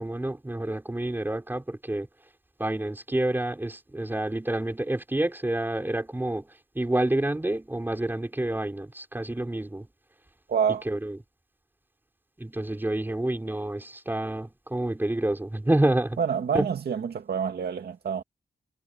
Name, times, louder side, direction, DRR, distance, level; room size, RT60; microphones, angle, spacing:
voice 1, 0.0-2.1 2.6-6.5 6.7-9.8 10.9-11.2 12.4-16.2 16.5-16.7, right 1 dB, 10° right, 5.2 m, -28 dB
voice 2, 10.5-10.9 16.2-18.2, right 7 dB, 75° right, 2.0 m, -27 dB
wide cardioid pair, 135°, 17 cm